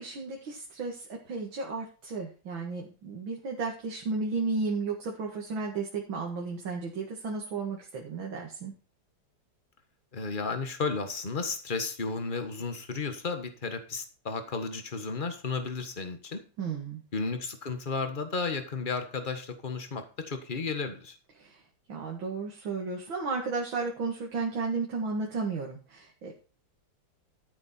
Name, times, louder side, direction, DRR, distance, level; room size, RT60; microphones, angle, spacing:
voice 1, 0.0-8.7 16.6-17.0 21.4-21.6 21.9-26.3, right 4 dB, 85° right, -1 dB, 2.8 m, -33 dB
voice 2, 10.1-16.4 17.1-21.1, left 4 dB, 25° left, 8 dB, 1.6 m, -33 dB
13.5 x 7.6 x 4.4 m, 0.35 s
omnidirectional pair, 2.1 m